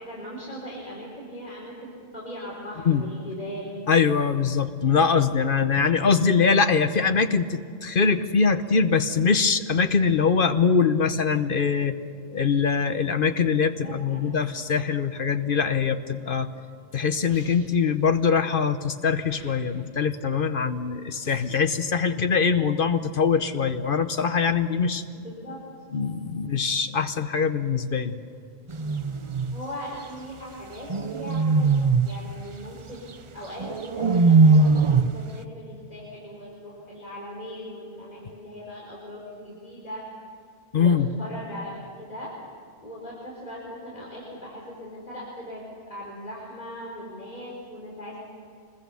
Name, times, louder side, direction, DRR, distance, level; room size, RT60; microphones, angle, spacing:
voice 1, 0.0-3.8 13.6-14.3 25.1-25.6 29.5-31.7 32.0-40.0 40.7-42.3 42.8-48.2, equal, 35° left, -5 dB, 4.3 m, -39 dB
voice 2, 3.9-11.9 12.3-16.5 16.9-25.0 25.9-28.2 40.7-41.1, left 5 dB, 50° left, 10 dB, 0.9 m, -23 dB
sound 1, 17.2-17.9 19.2-19.9 21.2-21.7, left 1 dB, 75° left, 6.3 m, -51 dB
sound 2, 28.7-29.6 30.9-32.2 33.6-35.2, right 4 dB, 35° right, 0.5 m, -20 dB
25.5 x 21.0 x 7.0 m, 2.3 s
omnidirectional pair, 1.3 m